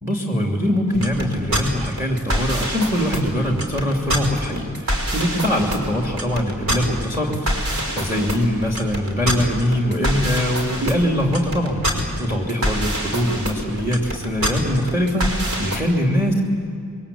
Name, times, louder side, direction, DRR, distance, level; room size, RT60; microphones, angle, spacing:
voice 1, 0.0-11.8 12.2-16.4, equal, 10° right, 0 dB, 2.9 m, -22 dB
sound 1, 0.9-15.8, equal, 65° right, 5.4 m, -25 dB
29.5 x 23.0 x 8.7 m, 2.4 s
head